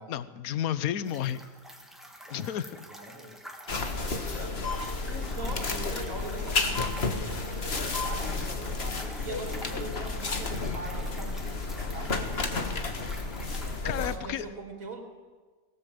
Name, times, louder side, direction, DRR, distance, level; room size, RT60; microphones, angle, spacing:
voice 1, 0.1-1.4 2.3-2.9 13.8-14.5, left 10 dB, 65° left, 14 dB, 1.3 m, -31 dB
sound 1, 1.0-13.8, equal, ahead, 2.4 m, -47 dB
voice 2, 2.9-3.4 3.7-12.3 13.8-15.0, right 3 dB, 55° right, 3 dB, 3.2 m, -42 dB
sound 2, 3.7-14.2, left 3 dB, 40° left, 1.8 m, -32 dB
23.5 x 18.0 x 7.8 m, 1.4 s
omnidirectional pair, 1.7 m